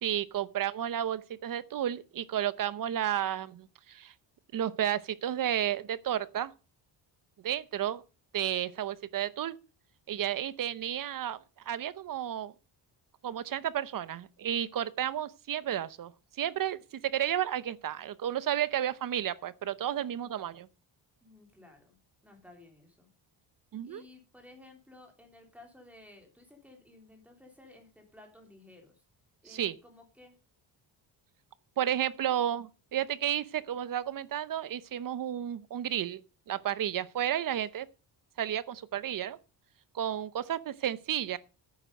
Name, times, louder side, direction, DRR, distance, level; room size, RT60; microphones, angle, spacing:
voice 1, 0.0-4.1 4.5-6.5 7.4-8.0 8.3-9.6 10.1-11.4 11.7-12.5 13.2-16.1 16.4-20.7 23.7-24.0 29.5-29.7 31.8-36.2 36.5-37.9 38.4-39.4 39.9-41.4, right 10 dB, 50° right, 0.8 m, -32 dB
voice 2, 21.2-22.0 22.2-23.1 23.8-29.0 29.4-30.4, left 2 dB, 5° right, 3.1 m, -55 dB
10.5 x 9.2 x 5.3 m
cardioid pair, 160°, 44 cm